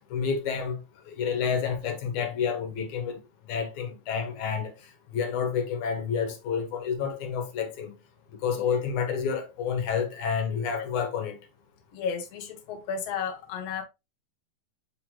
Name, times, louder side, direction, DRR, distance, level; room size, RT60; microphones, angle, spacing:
voice 1, 0.1-0.8 1.1-3.2 3.5-4.7 5.1-7.9 8.4-11.4, left 6 dB, 85° left, 2.7 m, -29 dB
voice 2, 10.5-10.9 11.9-13.8, left 6 dB, 65° left, 2.0 m, -34 dB
6.5 x 5.2 x 3.0 m
omnidirectional pair, 3.4 m